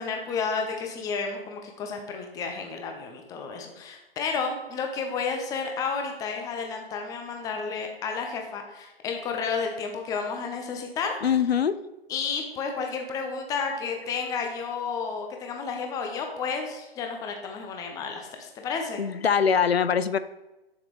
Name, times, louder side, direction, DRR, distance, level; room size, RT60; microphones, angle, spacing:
voice 1, 0.0-11.2 12.1-19.0, left 5 dB, 10° left, 3 dB, 0.7 m, -31 dB
voice 2, 11.2-11.8 19.0-20.2, left 7 dB, 80° left, 14 dB, 0.6 m, -22 dB
7.7 x 7.2 x 3.1 m, 1.0 s
figure-of-eight pair, 125°, 30 cm